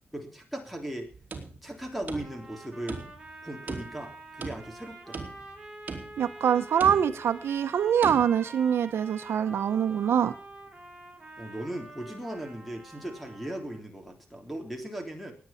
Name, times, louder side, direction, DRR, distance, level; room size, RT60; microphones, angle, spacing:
voice 1, 0.1-1.1 1.6-3.0 3.4-5.2 11.4-15.3, right 1 dB, ahead, 1 dB, 3.4 m, -38 dB
sound 1, 1.1-2.6 2.9-3.4 3.7-4.8 5.1-5.6 5.9-6.3 6.8-7.3 8.0-8.2, right 4 dB, 40° right, 3.1 m, -39 dB
sound 2, 2.1-13.8, right 2 dB, 20° right, 3.8 m, -47 dB
voice 2, 6.2-10.3, right 8 dB, 85° right, 11 dB, 0.9 m, -24 dB
18.0 x 9.5 x 5.8 m, 0.41 s
wide cardioid pair, 130°, 4 cm